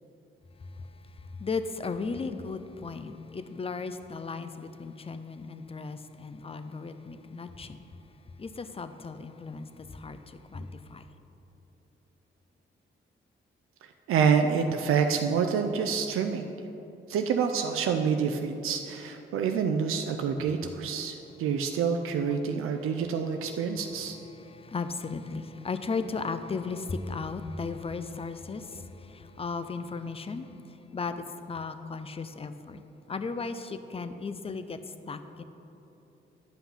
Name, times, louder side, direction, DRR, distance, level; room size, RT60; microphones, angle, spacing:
voice 1, 1.4-7.8 8.4-11.0 24.5-30.5 30.9-32.8 33.1-34.8 35.1-35.4, left 4 dB, 25° left, 10 dB, 0.6 m, -36 dB
voice 2, 14.1-16.5 17.1-24.2, right 6 dB, 90° right, 5 dB, 0.5 m, -27 dB
10.0 x 5.8 x 5.6 m, 3.0 s
cardioid pair, 75°, 21 cm